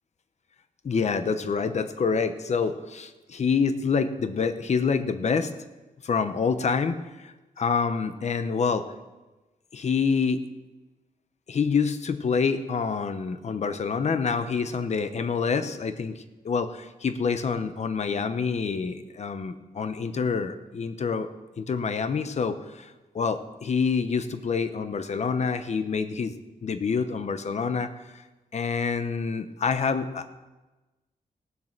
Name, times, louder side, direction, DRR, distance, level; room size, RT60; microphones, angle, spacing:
voice 1, 0.8-5.5 6.0-7.0 7.2-8.9 9.7-10.4 11.5-16.1 16.4-21.3 21.6-22.6 23.1-26.3 26.6-27.9 28.5-30.3, left 5 dB, 50° left, 10 dB, 0.9 m, -27 dB
17.5 x 7.7 x 5.9 m, 1.1 s
wide cardioid pair, 130°, 15 cm